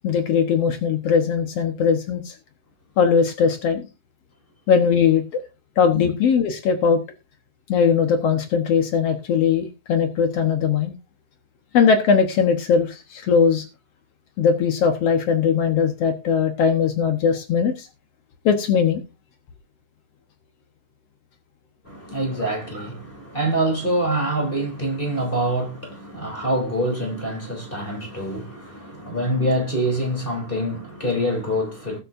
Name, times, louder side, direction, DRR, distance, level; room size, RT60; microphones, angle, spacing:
voice 1, 0.0-2.3 3.0-3.9 4.7-5.4 5.8-7.0 7.7-10.9 11.7-13.6 14.4-17.9 18.4-19.0, left 6 dB, 70° left, 1.5 m, -20 dB
voice 2, 21.8-32.0, right 1 dB, 15° left, 2.9 m, -25 dB
20.5 x 7.7 x 2.6 m
omnidirectional pair, 4.8 m